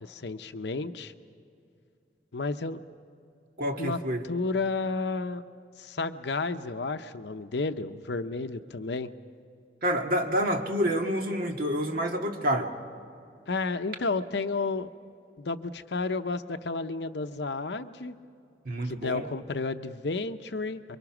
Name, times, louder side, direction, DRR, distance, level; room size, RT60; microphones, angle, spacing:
voice 1, 0.0-1.1 2.3-2.8 3.8-4.0 4.3-5.4 5.8-9.1 13.5-14.9 15.4-18.1 18.8-20.8, left 3 dB, 70° left, 9 dB, 0.7 m, -31 dB
voice 2, 3.6-4.2 9.8-12.7 18.7-19.3, equal, 55° right, 3 dB, 1.9 m, -28 dB
27.5 x 23.5 x 6.0 m, 2.5 s
head